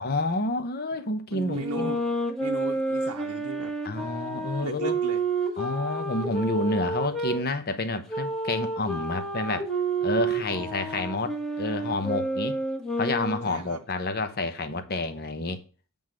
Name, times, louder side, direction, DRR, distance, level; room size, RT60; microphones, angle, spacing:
voice 1, 0.0-1.9 3.8-5.0 5.6-9.7 10.0-12.6 13.0-15.6, left 2 dB, 45° left, 1.0 m, -29 dB
voice 2, 1.3-2.1 2.4-3.7 4.6-5.2 5.5-5.6 10.5-11.1 13.4-13.8, right 4 dB, 85° right, 0.7 m, -37 dB
sound 1, 1.6-7.4 8.1-13.6, right 2 dB, ahead, 1.4 m, -30 dB
8.0 x 3.6 x 6.3 m
head